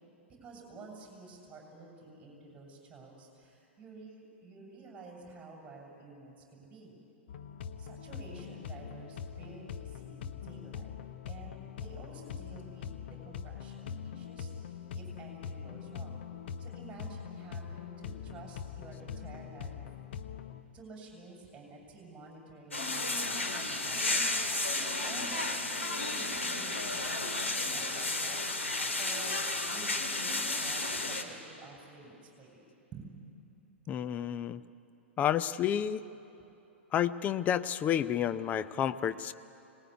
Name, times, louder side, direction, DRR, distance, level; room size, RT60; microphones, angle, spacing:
voice 1, 0.4-6.9 7.8-10.9 11.3-16.2 16.6-19.8 20.7-24.1 24.7-33.1, right 3 dB, 15° right, -1 dB, 6.8 m, -51 dB
sound 1, 7.3-20.6, left 7 dB, 50° left, 1.1 m, -43 dB
sound 2, 22.7-31.2, left 2 dB, 80° left, 2.4 m, -32 dB
voice 2, 33.9-34.6 35.2-36.0 36.9-39.3, left 10 dB, 25° left, 12 dB, 0.7 m, -30 dB
25.0 x 19.5 x 9.7 m, 3.0 s
figure-of-eight pair, 105°, 7 cm